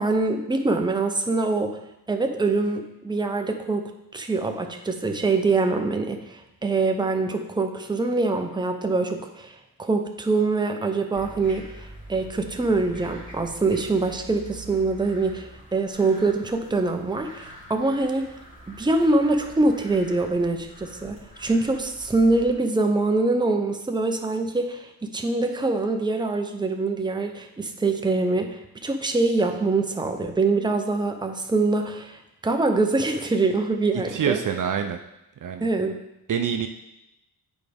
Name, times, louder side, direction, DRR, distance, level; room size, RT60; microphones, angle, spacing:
voice 1, 0.0-1.8 2.1-18.3 18.7-34.4 35.6-36.0, right 3 dB, 10° right, 4 dB, 0.8 m, -24 dB
sound 1, 11.1-22.5, right 1 dB, 20° left, 2.3 m, -45 dB
voice 2, 33.9-35.0 35.4-35.7 36.3-36.7, right 7 dB, 55° right, 6 dB, 0.6 m, -26 dB
8.4 x 4.6 x 3.5 m, 0.87 s
cardioid pair, 75°, 39 cm